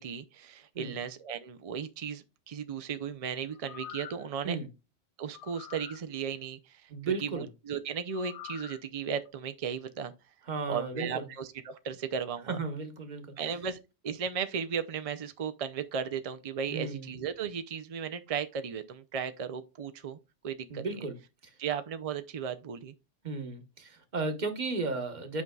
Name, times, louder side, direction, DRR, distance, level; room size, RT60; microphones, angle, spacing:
voice 1, 0.0-4.6 5.2-10.1 10.7-12.6 13.4-13.8 14.0-20.2 20.4-21.0 21.6-22.9, right 7 dB, 65° right, 0.3 m, -36 dB
sound 1, 3.5-4.3 5.3-6.0 8.1-8.8 9.3-9.4, left 10 dB, 60° left, 0.6 m, -45 dB
voice 2, 6.9-7.4 10.5-11.3 12.5-13.2 16.7-17.1 20.7-21.2 21.4-21.5 23.2-25.4, right 3 dB, 40° right, 1.2 m, -34 dB
8.6 x 5.3 x 2.3 m
omnidirectional pair, 1.3 m